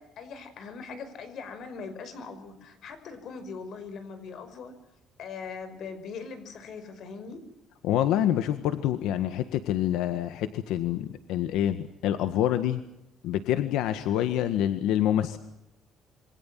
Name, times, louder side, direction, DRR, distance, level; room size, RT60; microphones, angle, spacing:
voice 1, 0.0-4.7 5.2-7.4, left 5 dB, 50° left, 11 dB, 5.5 m, -41 dB
voice 2, 7.8-12.8 13.2-15.4, left 11 dB, 90° left, 10 dB, 1.7 m, -26 dB
27.5 x 25.0 x 7.7 m, 0.85 s
cardioid pair, 165°, 0 cm